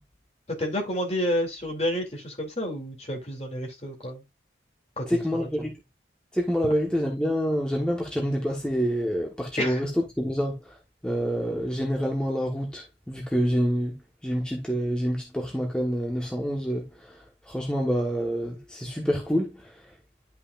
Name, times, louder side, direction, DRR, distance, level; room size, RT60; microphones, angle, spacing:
voice 1, 0.6-4.2 5.0-5.5 9.6-9.9, equal, 35° left, 2.8 m, -30 dB
voice 2, 5.1-5.8 6.3-9.9 10.2-10.8 11.0-19.9, equal, 5° left, 1.3 m, -27 dB
11.0 x 5.8 x 2.5 m
head